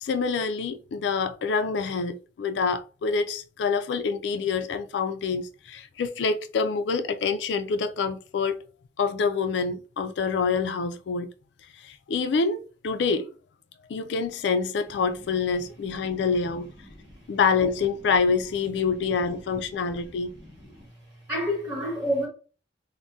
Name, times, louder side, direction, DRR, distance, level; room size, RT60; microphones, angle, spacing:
voice 1, 0.0-8.6 9.0-11.3 11.8-13.3 13.9-16.7 17.3-20.3, left 5 dB, 85° left, 0.3 m, -26 dB
voice 2, 16.9-17.2 20.0-20.1 20.3-20.9 21.3-22.3, equal, 15° right, 1.1 m, -30 dB
2.6 x 2.1 x 3.5 m
head